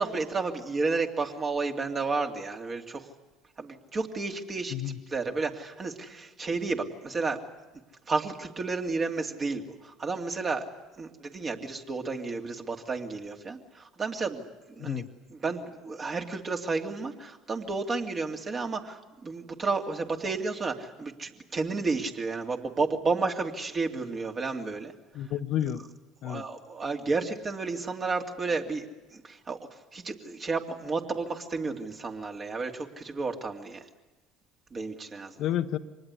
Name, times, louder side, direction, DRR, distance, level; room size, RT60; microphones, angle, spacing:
voice 1, 0.0-3.1 3.6-7.4 8.1-10.7 11.0-15.0 15.3-24.9 26.2-28.9 29.1-29.6 29.9-33.9 34.7-35.5, right 4 dB, 35° right, 3 dB, 2.7 m, -32 dB
voice 2, 25.1-25.8 26.2-26.4 35.4-35.8, left 11 dB, 60° left, 9 dB, 1.0 m, -30 dB
25.0 x 19.5 x 9.8 m, 1.1 s
hypercardioid pair, 65°, 0 cm